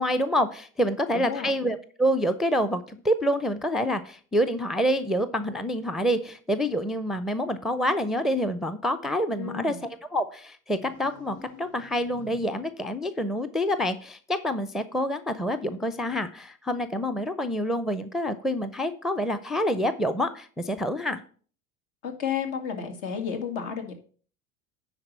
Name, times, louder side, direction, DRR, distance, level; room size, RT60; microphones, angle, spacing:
voice 1, 0.0-21.2, equal, ahead, 12 dB, 0.5 m, -27 dB
voice 2, 1.1-1.5 9.4-9.8 22.0-23.9, left 7 dB, 70° left, 5 dB, 2.1 m, -32 dB
sound 1, 10.8-12.8, equal, 90° left, 2.7 m, -49 dB
9.8 x 4.0 x 6.7 m, 0.43 s
hypercardioid pair, 85°, 43 cm